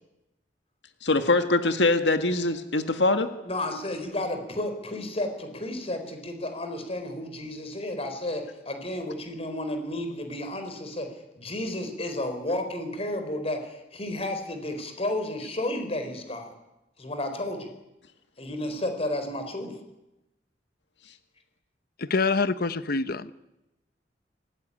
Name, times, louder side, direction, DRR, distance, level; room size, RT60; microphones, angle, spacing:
voice 1, 1.0-3.3, left 2 dB, 75° left, 8 dB, 1.8 m, -23 dB
voice 2, 3.4-11.1 11.4-16.5 17.0-17.7 18.4-19.7, left 1 dB, 35° left, 7 dB, 4.6 m, -32 dB
voice 3, 22.0-23.3, left 4 dB, 55° left, 13 dB, 1.0 m, -26 dB
24.5 x 18.5 x 10.0 m, 0.95 s
head